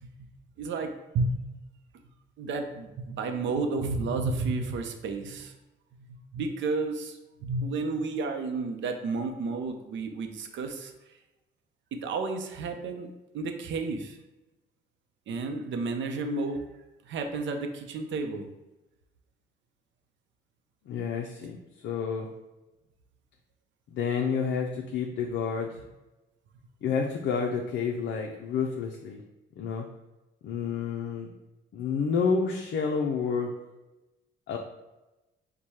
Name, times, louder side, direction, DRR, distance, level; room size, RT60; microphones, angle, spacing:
voice 1, 0.6-1.4 2.4-5.5 6.1-10.9 11.9-14.2 15.3-16.6 17.1-18.5, right 3 dB, 70° right, 5 dB, 0.6 m, -31 dB
voice 2, 20.9-22.3 23.9-25.8 26.8-29.2 29.6-29.9 30.4-31.3 31.7-33.5 34.5-34.6, left 5 dB, 65° left, 1 dB, 0.5 m, -29 dB
4.7 x 2.2 x 4.1 m, 1.0 s
cardioid pair, 90°, 20 cm